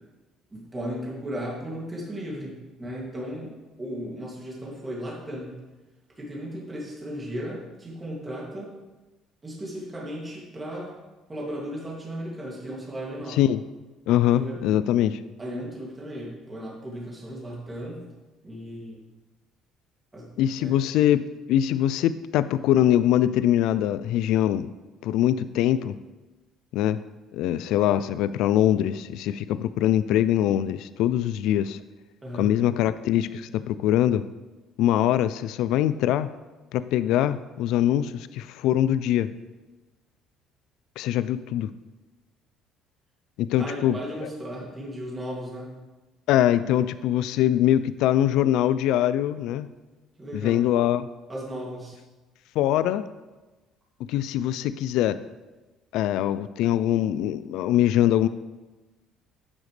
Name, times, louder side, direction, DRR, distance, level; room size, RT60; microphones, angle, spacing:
voice 1, 0.5-3.5 3.8-5.5 6.2-8.7 9.4-10.9 11.3-13.4 14.3-14.6 15.4-18.1 18.4-19.0 20.1-20.3 20.6-20.7 32.2-32.5 43.6-45.7 50.2-50.6 51.3-52.0, equal, 15° right, -3 dB, 2.5 m, -35 dB
voice 2, 13.3-13.6 14.1-15.2 20.4-24.7 25.0-25.9 26.7-27.0 27.3-31.8 32.4-34.3 34.8-36.3 36.7-39.3 41.0-41.7 43.4-44.3 46.3-49.7 50.3-51.1 52.6-53.1 54.0-55.2 55.9-58.3, left 12 dB, 75° left, 14 dB, 0.4 m, -23 dB
11.5 x 9.2 x 3.3 m, 1.2 s
cardioid pair, 150°, 0 cm